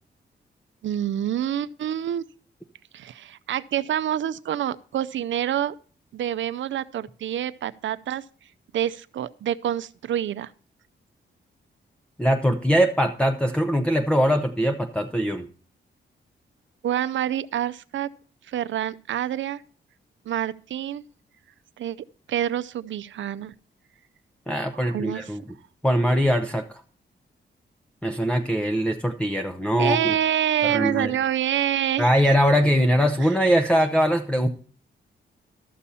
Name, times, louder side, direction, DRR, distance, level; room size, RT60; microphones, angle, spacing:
voice 1, 0.8-2.2 2.9-5.7 6.1-8.2 8.7-10.5 16.8-18.1 18.5-19.6 20.3-21.0 21.8-22.0 22.3-23.5 24.7-25.3 29.8-32.1 33.2-33.3, right 10 dB, 80° right, 15 dB, 0.6 m, -27 dB
voice 2, 12.2-15.5 24.5-25.4 25.8-26.8 28.0-30.0 30.6-31.1 32.0-34.5, equal, 5° left, 6 dB, 0.6 m, -22 dB
12.5 x 6.9 x 4.2 m, 0.43 s
wide cardioid pair, 135°, 19 cm